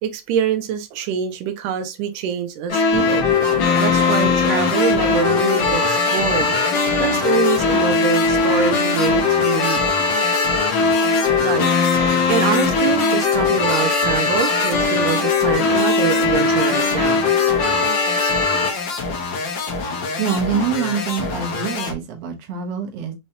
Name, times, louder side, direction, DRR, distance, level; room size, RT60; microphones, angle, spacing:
voice 1, 0.0-3.2 3.8-6.5 7.0-9.8 11.3-11.7 12.3-17.2, right 7 dB, 90° right, 2.1 m, -24 dB
sound 1, 2.7-18.7, left 4 dB, 85° left, 1.1 m, -19 dB
sound 2, 2.9-21.9, left 4 dB, 65° left, 1.2 m, -27 dB
voice 2, 20.2-23.1, right 7 dB, 60° right, 1.9 m, -25 dB
5.5 x 3.1 x 2.7 m
omnidirectional pair, 3.6 m